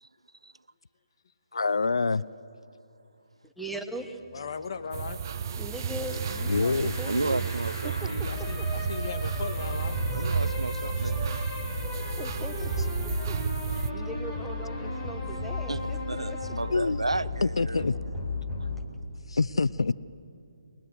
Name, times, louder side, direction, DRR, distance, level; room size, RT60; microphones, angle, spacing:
voice 1, 1.5-2.2 6.5-7.0 16.7-17.0 17.4-17.9 19.3-19.9, left 4 dB, 75° left, 0.5 m, -25 dB
voice 2, 3.4-4.2 5.5-7.5 7.8-8.1 8.6-8.7 12.2-16.0 16.3-16.4, right 1 dB, ahead, 1.4 m, -40 dB
sound 1, 3.7-18.9, left 2 dB, 20° left, 4.7 m, -35 dB
voice 3, 4.3-5.2 8.1-10.0, left 5 dB, 50° left, 1.9 m, -37 dB
sound 2, 4.9-13.9, right 8 dB, 40° right, 0.5 m, -32 dB
voice 4, 6.6-8.2 10.1-11.5 12.4-12.5 13.0-13.6 15.2-15.4 15.7-17.8 18.6-18.7, right 2 dB, 90° right, 0.7 m, -34 dB
28.5 x 21.5 x 8.1 m
figure-of-eight pair, 145°, 3 cm